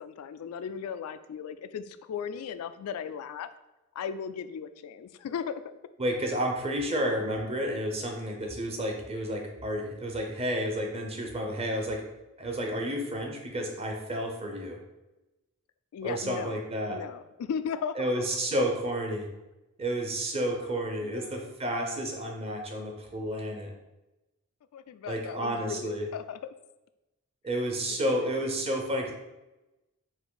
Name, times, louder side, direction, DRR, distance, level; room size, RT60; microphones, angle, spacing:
voice 1, 0.0-3.5 4.0-5.6 15.9-16.6 16.9-18.3 20.5-21.5 24.7-26.5 28.1-28.5, left 7 dB, 85° left, 15 dB, 0.3 m, -37 dB
voice 2, 6.0-12.0 12.4-14.8 16.0-17.0 18.0-19.3 19.8-23.7 25.1-26.1 27.4-29.1, equal, 30° right, 2 dB, 0.6 m, -31 dB
4.4 x 2.5 x 3.8 m, 1.0 s
head